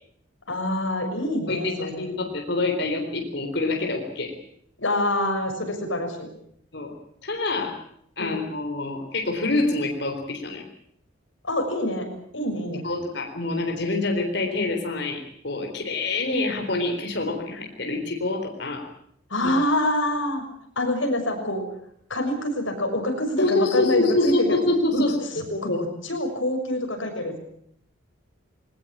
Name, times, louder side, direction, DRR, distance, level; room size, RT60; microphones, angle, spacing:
voice 1, 0.5-2.1 4.8-6.3 8.2-8.4 11.4-12.1 12.3-12.8 19.3-20.4 20.8-21.6 22.1-24.6 24.9-25.0 25.6-27.4, left 1 dB, 70° left, 3 dB, 6.5 m, -26 dB
voice 2, 1.5-4.3 6.7-6.9 7.2-7.8 8.2-10.6 12.8-18.8 19.4-19.5 23.4-25.2 25.5-25.8, left 2 dB, 55° left, 2 dB, 4.1 m, -26 dB
21.0 x 19.0 x 8.8 m, 0.69 s
head